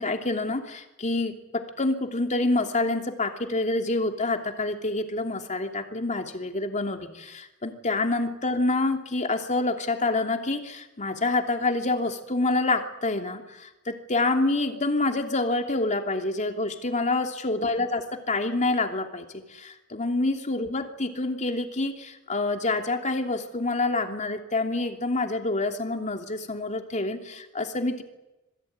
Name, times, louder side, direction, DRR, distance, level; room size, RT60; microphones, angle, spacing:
voice 1, 0.0-28.0, left 2 dB, 35° left, 4 dB, 2.9 m, -27 dB
27.0 x 21.5 x 9.5 m, 0.99 s
head